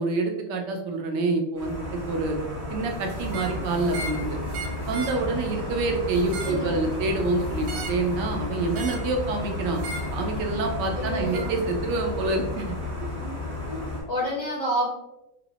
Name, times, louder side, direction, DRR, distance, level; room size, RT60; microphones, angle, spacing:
voice 1, 0.0-2.4 2.7-4.4 4.9-9.8 10.1-12.7, right 3 dB, 75° right, 3 dB, 1.1 m, -27 dB
sound 1, 1.6-14.0, left 2 dB, 25° right, 1.3 m, -34 dB
sound 2, 3.2-14.1, right 1 dB, 55° right, 0.6 m, -37 dB
sound 3, 3.2-3.6 3.9-4.2 4.5-5.2 6.1-6.6 7.6-8.0 8.7-9.1 9.8-10.1 11.3-11.5, right 3 dB, 90° right, 1.4 m, -37 dB
voice 2, 6.4-6.8 10.9-11.5 13.2-13.4 13.7-13.8 14.1-14.9, equal, 70° left, -5 dB, 0.7 m, -29 dB
3.3 x 3.3 x 2.4 m, 0.96 s
omnidirectional pair, 2.1 m